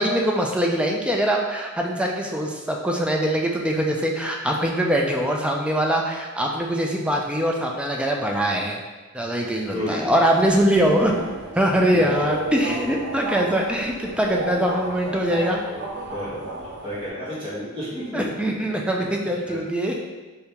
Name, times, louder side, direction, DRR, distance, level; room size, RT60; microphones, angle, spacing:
voice 1, 0.0-8.8 9.1-11.1 11.6-15.6 18.1-20.0, equal, 5° right, 0 dB, 0.3 m, -22 dB
voice 2, 9.7-10.1 11.9-12.1 15.7-16.3 16.8-18.7 19.0-19.6, equal, 25° right, -10 dB, 1.3 m, -32 dB
Subway metro underground, 10.3-17.1, right 2 dB, 55° right, 0.5 m, -33 dB
3.4 x 2.8 x 2.9 m, 1.2 s
head